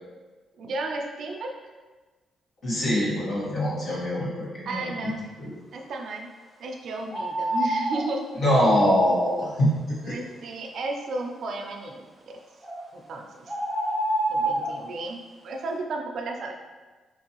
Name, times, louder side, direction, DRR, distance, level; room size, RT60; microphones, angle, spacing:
voice 1, 0.5-1.5 4.7-5.2 5.7-6.3 6.6-8.6 10.0-12.0 12.9-13.3 14.3-16.5, right 2 dB, 65° right, 2 dB, 0.4 m, -33 dB
voice 2, 2.6-5.1 5.4-5.6 8.4-9.7 10.1-10.2, equal, 60° left, -7 dB, 1.4 m, -23 dB
sound 1, 7.1-8.0 12.6-12.8 13.5-14.7, right 1 dB, 15° right, 0.7 m, -26 dB
4.3 x 2.6 x 2.9 m, 1.3 s
cardioid pair, 110°, 0 cm